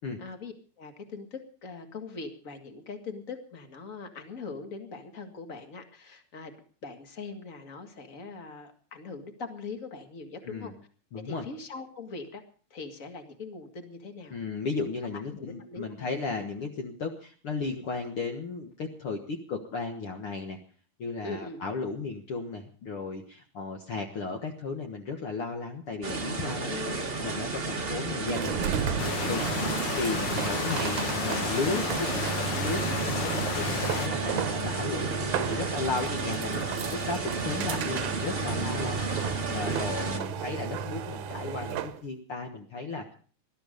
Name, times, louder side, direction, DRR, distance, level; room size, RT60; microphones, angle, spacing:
voice 1, 0.2-10.7 11.2-12.4 12.7-14.4 15.1-16.1 21.2-21.6 26.7-27.2 30.6-31.5 34.8-35.0 40.1-40.4, left 4 dB, 30° left, 6 dB, 1.7 m, -42 dB
voice 2, 11.1-11.4 14.3-20.6 21.0-26.7 27.2-29.5 30.0-43.1, left 4 dB, 50° left, 3 dB, 1.9 m, -35 dB
sound 1, 26.0-40.2, right 3 dB, 30° right, 1.1 m, -33 dB
sound 2, 28.3-42.0, right 7 dB, 70° right, 2.3 m, -34 dB
sound 3, 29.0-34.1, left 7 dB, 85° left, 1.0 m, -33 dB
19.5 x 12.5 x 5.2 m, 0.43 s
omnidirectional pair, 3.7 m